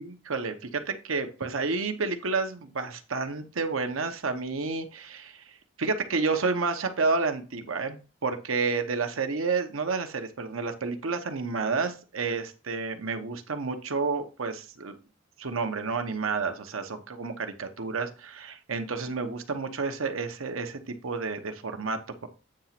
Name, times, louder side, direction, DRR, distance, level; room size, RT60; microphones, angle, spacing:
voice 1, 0.0-15.0 15.4-22.3, right 4 dB, 90° right, 7 dB, 1.0 m, -30 dB
8.8 x 2.9 x 5.8 m, 0.33 s
head